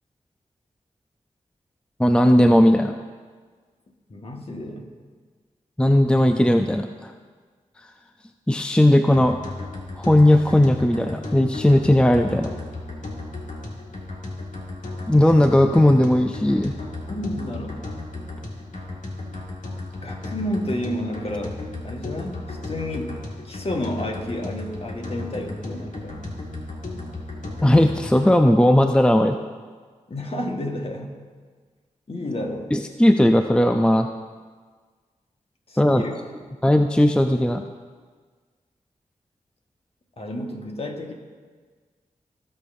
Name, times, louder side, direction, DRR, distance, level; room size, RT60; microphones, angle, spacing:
voice 1, 2.0-2.9 5.8-7.1 8.5-9.4 10.0-12.5 15.1-16.7 27.6-29.4 32.7-34.1 35.8-36.0 36.6-37.6, left 1 dB, 5° left, 6 dB, 0.5 m, -17 dB
voice 2, 4.1-4.9 17.1-17.8 20.0-23.2 23.4-26.2 30.1-31.1 32.1-32.7 35.7-36.2 40.2-41.1, left 1 dB, 45° left, 2 dB, 1.4 m, -31 dB
sound 1, 9.1-28.3, left 2 dB, 65° left, 1.9 m, -35 dB
17.0 x 6.5 x 2.6 m, 1.5 s
cardioid pair, 50°, 14 cm